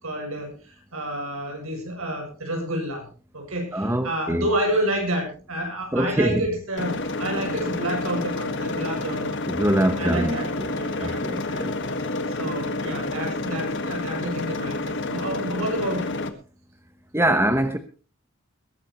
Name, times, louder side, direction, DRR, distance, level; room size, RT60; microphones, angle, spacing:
voice 1, 0.0-3.0 3.3-9.4 10.0-11.6 12.4-16.2, right 1 dB, 75° right, 2 dB, 7.5 m, -29 dB
voice 2, 3.7-4.5 5.9-6.4 9.5-12.0 17.1-17.8, right 1 dB, 10° right, 9 dB, 1.0 m, -24 dB
sound 1, 6.8-16.3, left 2 dB, 55° left, 1.6 m, -29 dB
21.5 x 13.0 x 3.0 m, 0.37 s
head